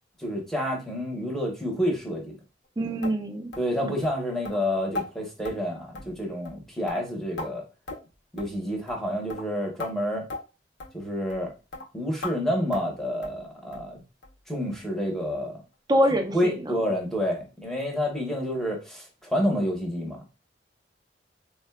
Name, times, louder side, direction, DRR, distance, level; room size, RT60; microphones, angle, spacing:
voice 1, 0.2-2.3 3.6-7.6 8.3-10.2 10.9-11.5 11.9-14.0 14.5-15.6 16.3-20.2, equal, ahead, 0 dB, 0.8 m, -29 dB
voice 2, 2.8-3.5 15.9-16.8, equal, 25° right, 5 dB, 0.5 m, -25 dB
sound 1, 3.0-3.2 3.5-3.7 4.0-4.1 4.4-4.6 4.9-5.1 5.4-5.6 5.9-6.2 6.4-6.6 6.9-7.5 7.9-8.1 8.4-8.5 8.9-9.0 9.3-9.5 9.8-9.9 10.3-10.4 10.8-10.9 11.3-11.4 11.7-11.9 12.2-12.4 12.7-12.9 13.2-13.4 13.7-13.9 14.2-14.3 14.7-14.8 15.2-15.3, left 2 dB, 75° left, 0.6 m, -37 dB
3.5 x 2.1 x 2.3 m, 0.30 s
head